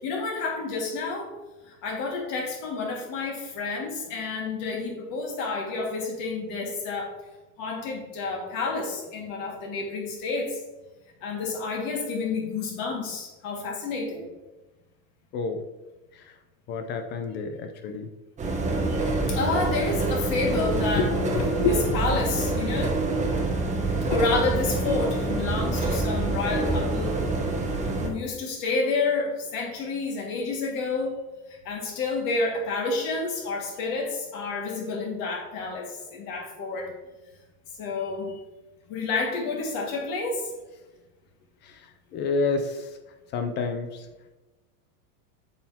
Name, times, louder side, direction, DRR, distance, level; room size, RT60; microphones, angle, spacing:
voice 1, 0.0-1.3 1.8-7.1 7.6-10.6 11.2-14.3 18.9-19.0 19.3-21.1 21.7-22.9 24.1-27.1 28.0-31.1 31.7-36.9 37.8-38.4 38.9-40.4, left 3 dB, 45° left, -1 dB, 2.0 m, -29 dB
voice 2, 15.3-15.6 16.1-16.4 16.7-18.1 21.0-21.8 22.7-22.8 23.2-23.5 25.6-25.7 26.1-26.2 27.8-27.9 41.6-42.9 43.3-44.1, left 4 dB, 25° left, 7 dB, 0.4 m, -29 dB
sound 1, 18.4-28.1, right 2 dB, 15° right, 1.0 m, -26 dB
8.5 x 5.9 x 2.8 m, 1.1 s
supercardioid pair, 135°, 44 cm